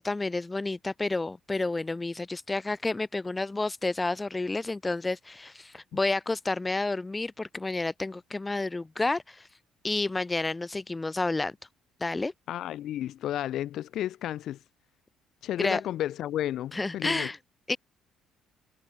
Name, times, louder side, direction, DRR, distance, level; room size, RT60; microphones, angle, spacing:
voice 1, 0.0-9.5 9.8-11.5 12.0-12.3 15.6-15.8 16.7-17.4 17.7-17.8, left 2 dB, 15° left, 0.7 m, -30 dB
voice 2, 12.5-14.6 15.4-17.3, left 12 dB, 60° left, 1.2 m, -32 dB
cardioid pair, 145°, 0 cm